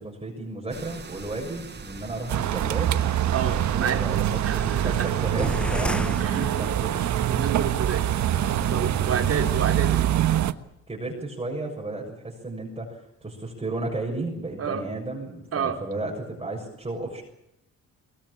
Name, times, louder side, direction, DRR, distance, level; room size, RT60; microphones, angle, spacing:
voice 1, 0.0-3.0 3.7-7.1 10.9-17.2, right 2 dB, 20° right, -1 dB, 6.9 m, -33 dB
sound 1, 0.7-10.1, right 4 dB, 35° right, 6.8 m, -41 dB
sound 2, 2.3-10.5, right 11 dB, 70° right, 1.3 m, -24 dB
voice 2, 3.3-4.0 4.4-5.1 6.2-6.5 7.3-8.0 8.7-10.4 14.6-14.8 15.5-15.8, right 7 dB, 50° right, 3 dB, 4.6 m, -29 dB
sound 3, 5.4-7.2, left 1 dB, 5° left, 1.0 m, -31 dB
22.5 x 21.0 x 8.6 m, 0.81 s
cardioid pair, 90°, 30 cm